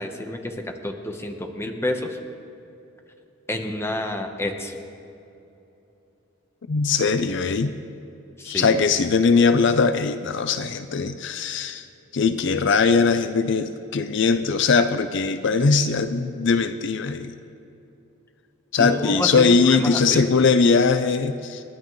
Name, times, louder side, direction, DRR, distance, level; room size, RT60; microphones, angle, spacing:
voice 1, 0.0-2.2 3.5-4.8 8.4-8.7 18.8-20.2, left 1 dB, 15° left, 4 dB, 1.1 m, -29 dB
voice 2, 6.7-7.7 8.4-11.9 12.1-17.3 18.7-21.6, left 4 dB, 60° left, 10 dB, 0.5 m, -20 dB
28.0 x 11.5 x 3.2 m, 2.8 s
head